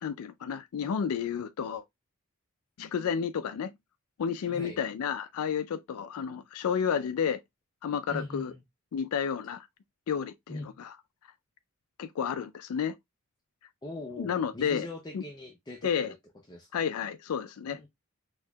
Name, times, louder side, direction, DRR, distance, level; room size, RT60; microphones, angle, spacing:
voice 1, 0.0-1.8 2.8-3.7 4.2-7.4 7.8-8.5 8.9-9.7 10.1-10.9 12.0-12.9 14.2-14.9 15.1-15.2 15.8-16.1 16.7-17.8, left 7 dB, 75° left, 0.4 m, -31 dB
voice 2, 4.5-4.8 8.1-8.6 10.5-10.8 13.8-16.1 16.5-16.8 17.7-17.9, left 2 dB, 20° left, 0.5 m, -41 dB
4.3 x 2.9 x 2.3 m
head